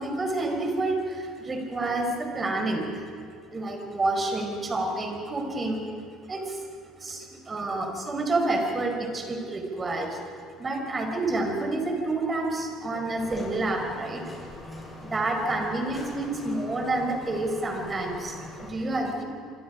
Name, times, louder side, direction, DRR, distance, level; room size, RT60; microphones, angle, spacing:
voice 1, 0.0-3.0 3.5-5.9 6.3-6.7 7.0-10.2 10.6-14.5 15.0-19.2, right 2 dB, 25° right, 4 dB, 5.1 m, -29 dB
sound 1, 13.2-18.7, left 2 dB, 20° left, 7.7 m, -42 dB
26.5 x 25.0 x 5.3 m, 2.4 s
hypercardioid pair, 60°, 0 cm